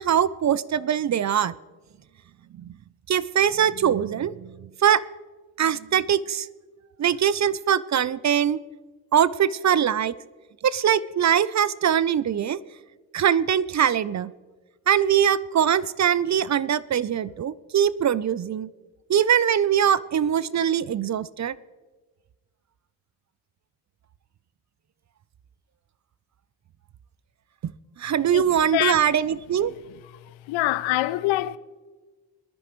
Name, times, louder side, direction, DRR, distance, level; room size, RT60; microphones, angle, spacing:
voice 1, 0.0-1.5 2.6-2.7 3.1-4.5 4.8-5.0 5.6-6.5 7.0-8.6 9.1-10.1 10.6-12.6 13.1-14.3 14.9-18.7 19.1-21.6 27.6-27.7 28.0-29.7, right 9 dB, 40° right, 0.5 m, -22 dB
voice 2, 30.5-31.6, left 16 dB, 85° left, 0.6 m, -24 dB
21.5 x 10.0 x 3.1 m
supercardioid pair, 55°, 45 cm